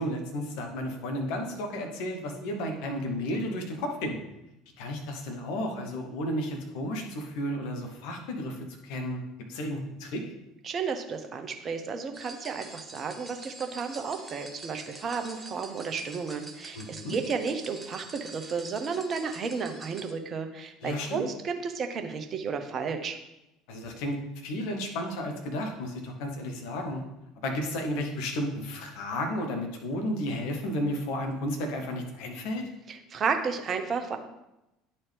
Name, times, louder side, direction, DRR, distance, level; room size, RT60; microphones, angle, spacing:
voice 1, 0.0-4.2 4.8-9.2 9.5-10.3 16.7-17.2 20.8-21.3 23.7-27.0 27.4-32.6, left 1 dB, 60° left, 3 dB, 1.2 m, -33 dB
voice 2, 10.6-23.2 32.9-34.2, right 5 dB, 35° right, 6 dB, 0.8 m, -32 dB
sound 1, 12.1-20.1, right 3 dB, 15° right, 1.0 m, -46 dB
10.0 x 4.2 x 3.3 m, 0.91 s
figure-of-eight pair, 65°, 0 cm